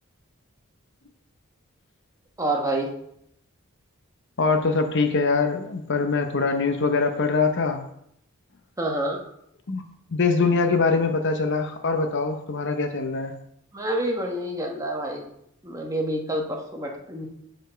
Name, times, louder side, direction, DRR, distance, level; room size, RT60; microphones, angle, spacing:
voice 1, 2.4-2.9 8.8-9.2 13.7-15.2 15.6-17.3, right 1 dB, 15° right, 1 dB, 1.1 m, -27 dB
voice 2, 4.4-7.8 9.7-9.8 10.1-13.4, left 4 dB, 55° left, 6 dB, 0.8 m, -23 dB
8.2 x 4.3 x 5.7 m, 0.74 s
head